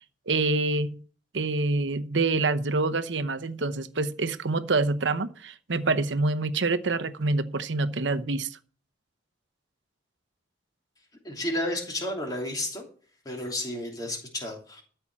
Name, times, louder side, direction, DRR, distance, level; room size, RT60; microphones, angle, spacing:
voice 1, 0.3-1.0 1.3-8.6, right 3 dB, 70° right, 0.9 m, -26 dB
voice 2, 11.2-12.9 13.2-14.8, left 1 dB, 20° left, 2.9 m, -32 dB
13.0 x 5.7 x 7.4 m
head